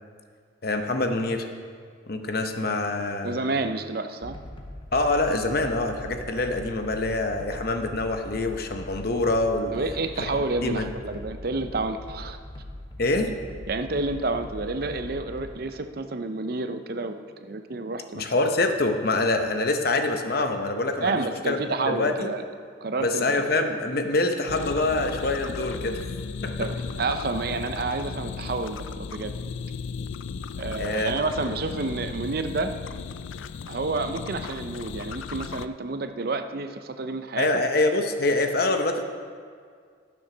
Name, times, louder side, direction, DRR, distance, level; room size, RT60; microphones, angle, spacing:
voice 1, 0.6-1.5 2.1-3.4 4.9-9.7 10.2-10.3 10.6-10.9 13.0-13.3 18.1-22.3 23.0-26.0 26.4-26.6 30.8-31.2 37.4-39.0, left 2 dB, 50° left, 5 dB, 0.8 m, -25 dB
voice 2, 3.2-4.4 9.7-12.4 13.7-18.3 21.0-22.4 22.8-23.4 26.6-26.7 27.0-28.8 29.1-29.3 30.6-32.7 33.7-37.5, right 3 dB, 50° right, 8 dB, 0.6 m, -29 dB
sound 1, 4.2-15.5, left 1 dB, 25° left, 1.0 m, -41 dB
sound 2, 24.5-35.7, left 5 dB, 80° left, 0.4 m, -35 dB
12.0 x 7.2 x 6.0 m, 2.1 s
head